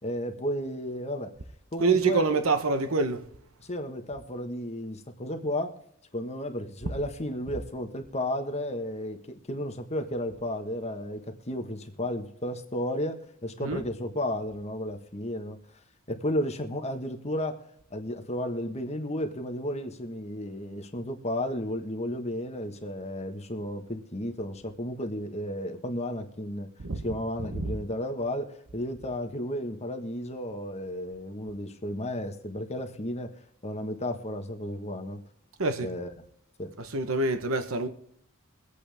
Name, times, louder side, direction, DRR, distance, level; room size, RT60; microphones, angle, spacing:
voice 1, 0.0-1.3 1.7-2.3 3.6-5.7 6.1-15.6 16.1-17.6 17.9-26.7 27.0-33.3 33.6-35.2 35.8-36.1 36.6-36.7, left 1 dB, 30° left, 1.4 m, -33 dB
voice 2, 1.8-3.2 13.6-13.9 26.8-27.2 27.5-27.8 35.6-35.9 36.8-37.9, right 3 dB, 75° right, 1.1 m, -26 dB
23.5 x 8.3 x 3.5 m
head